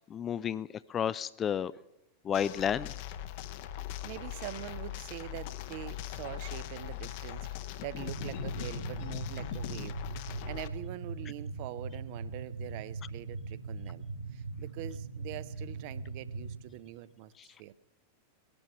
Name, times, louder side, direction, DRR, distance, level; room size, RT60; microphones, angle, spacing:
voice 1, 0.1-1.7 2.2-2.9, left 8 dB, 25° left, 0.5 m, -31 dB
sound 1, 2.3-10.7, left 11 dB, 50° left, 1.0 m, -40 dB
voice 2, 4.0-17.7, right 15 dB, 45° right, 0.7 m, -44 dB
sound 2, 8.1-16.6, right 4 dB, 65° right, 2.8 m, -40 dB
19.5 x 11.5 x 5.9 m
figure-of-eight pair, 90°, 0 cm